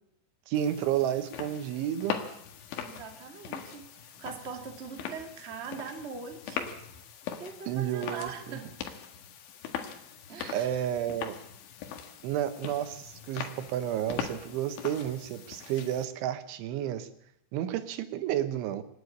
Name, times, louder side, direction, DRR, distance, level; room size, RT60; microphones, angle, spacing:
sound 1, 0.5-16.1, left 8 dB, 85° left, 4.1 m, -41 dB
voice 1, 0.5-2.2 7.7-8.6 10.5-11.3 12.2-17.1 17.5-18.8, right 11 dB, 85° right, 10 dB, 3.6 m, -31 dB
voice 2, 2.8-6.7 7.4-8.7 10.3-10.7, right 5 dB, 30° right, 3 dB, 1.3 m, -41 dB
26.0 x 10.5 x 9.8 m, 0.75 s
omnidirectional pair, 5.3 m